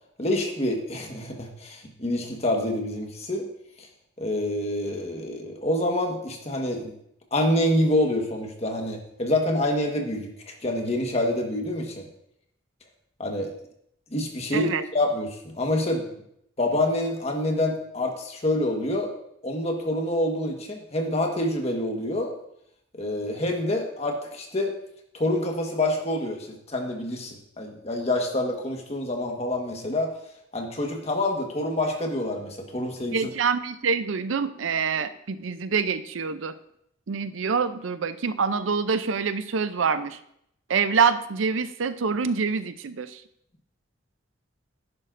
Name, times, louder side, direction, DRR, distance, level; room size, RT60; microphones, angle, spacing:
voice 1, 0.2-3.4 3.8-3.9 4.2-6.9 7.3-12.1 13.2-13.5 14.1-16.1 16.6-19.1 19.4-22.3 23.0-24.7 25.1-30.1 30.5-33.3, left 1 dB, 35° left, 2 dB, 1.4 m, -27 dB
voice 2, 14.5-14.8 33.1-36.5 37.1-40.2 40.7-43.2, right 5 dB, 85° right, 12 dB, 0.5 m, -26 dB
10.5 x 10.5 x 2.6 m, 0.75 s
head